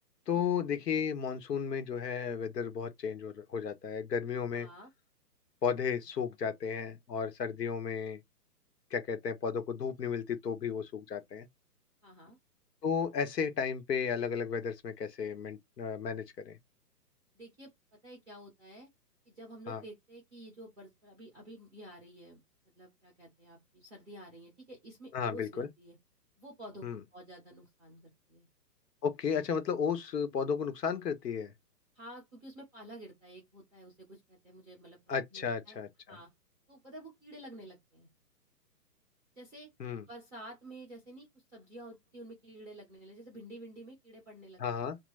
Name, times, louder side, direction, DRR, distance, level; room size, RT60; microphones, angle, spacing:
voice 1, 0.3-4.7 5.6-8.2 8.9-11.5 12.8-16.6 19.7-19.8 25.1-25.7 26.8-27.0 29.0-31.5 35.1-36.2 39.8-40.0 44.6-45.0, left 6 dB, 80° left, 1.1 m, -34 dB
voice 2, 4.5-4.9 12.0-12.4 17.3-18.9 19.2-22.4 22.8-26.0 26.4-26.8 27.1-28.5 31.9-35.8 36.1-36.3 36.7-38.1 39.3-39.7 40.1-44.9, right 1 dB, 5° left, 0.5 m, -50 dB
3.1 x 2.2 x 3.2 m
hypercardioid pair, 155°, 48 cm